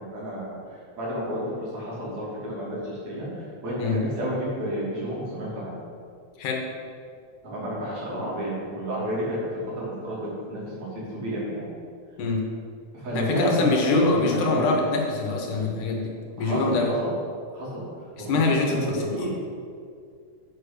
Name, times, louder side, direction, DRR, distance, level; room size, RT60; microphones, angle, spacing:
voice 1, 0.0-5.8 7.4-9.4 9.7-11.7 12.9-14.7 16.4-17.1 17.5-19.3, right 1 dB, 65° right, -7 dB, 4.1 m, -31 dB
voice 2, 13.1-16.1 16.4-16.9 18.2-19.3, left 3 dB, 85° left, 0 dB, 2.8 m, -24 dB
7.6 x 6.5 x 6.7 m, 2.3 s
omnidirectional pair, 3.5 m